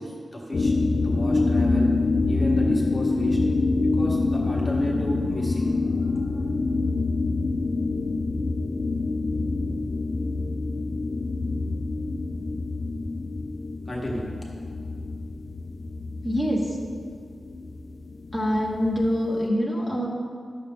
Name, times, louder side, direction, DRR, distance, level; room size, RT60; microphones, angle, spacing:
voice 1, 0.0-1.9 2.3-3.4 3.8-6.4 13.9-14.3, equal, 15° left, -3 dB, 1.3 m, -33 dB
sound 1, 0.5-19.4, left 3 dB, 50° left, 0.3 m, -26 dB
voice 2, 16.2-16.8 18.3-20.1, equal, 10° right, -5 dB, 1.2 m, -25 dB
11.0 x 6.5 x 3.6 m, 2.1 s
wide cardioid pair, 130°, 0 cm